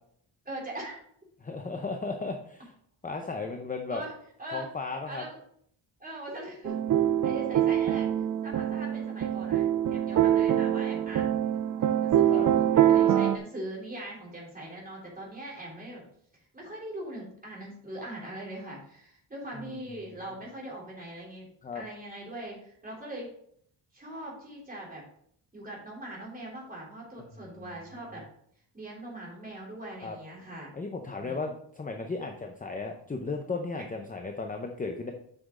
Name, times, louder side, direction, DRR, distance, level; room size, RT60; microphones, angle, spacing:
voice 1, 0.4-0.9 3.9-4.1 4.4-4.7 5.1-5.4 6.0-6.8 7.2-11.5 12.0-16.0 16.3-21.5 21.7-23.3 23.9-25.0 25.5-28.2 28.7-30.7 31.2-31.5, right 1 dB, 20° right, -4 dB, 3.4 m, -41 dB
voice 2, 1.4-2.7 3.0-4.0 4.5-5.2 12.3-12.5 19.5-19.8 21.6-21.8 30.0-30.2 30.7-35.1, left 3 dB, 15° left, 4 dB, 0.6 m, -35 dB
sound 1, 6.7-13.4, right 11 dB, 45° right, 0.4 m, -24 dB
7.9 x 6.1 x 3.7 m, 0.65 s
wide cardioid pair, 150°, 47 cm